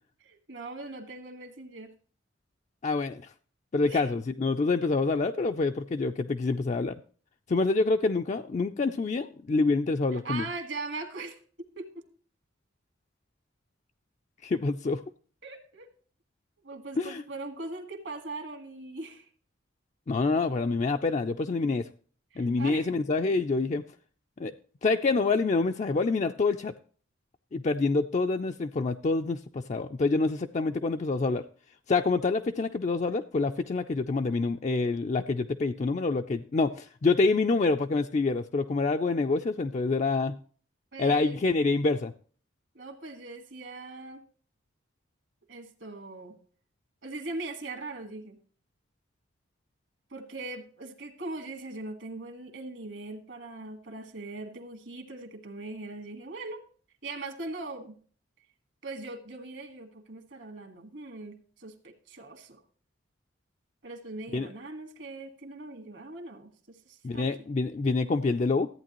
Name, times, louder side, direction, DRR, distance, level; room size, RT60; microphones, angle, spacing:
voice 1, 0.2-1.9 3.8-4.1 10.1-12.0 15.4-15.9 16.6-19.3 22.3-22.9 40.9-41.4 42.8-44.2 45.5-46.4 47.0-48.4 50.1-56.6 57.0-58.0 58.8-62.6 63.8-67.3, right 2 dB, 65° right, 6 dB, 1.7 m, -40 dB
voice 2, 2.8-3.3 3.7-7.0 7.5-10.5 14.4-15.0 17.0-17.2 20.1-21.9 22.4-23.8 24.4-24.5 24.8-26.7 27.5-31.4 31.9-40.3 41.0-42.1 64.3-64.5 67.0-68.7, left 3 dB, 35° left, 5 dB, 0.3 m, -27 dB
13.5 x 8.9 x 3.0 m, 0.43 s
head